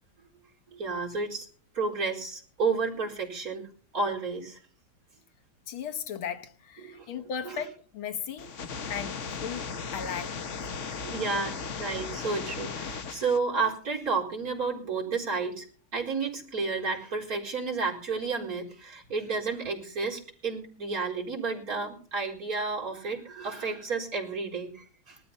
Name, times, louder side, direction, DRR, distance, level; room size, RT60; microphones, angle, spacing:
voice 1, 0.7-1.5 1.7-3.7 3.9-4.6 6.8-7.1 7.4-7.6 10.9-15.7 15.9-25.2, right 4 dB, 45° right, 4.9 m, -31 dB
voice 2, 5.7-8.5 8.9-10.4, left 7 dB, 90° left, 2.2 m, -36 dB
sound 1, 8.4-13.4, left 5 dB, 45° left, 1.2 m, -36 dB
19.5 x 13.0 x 4.3 m
omnidirectional pair, 2.2 m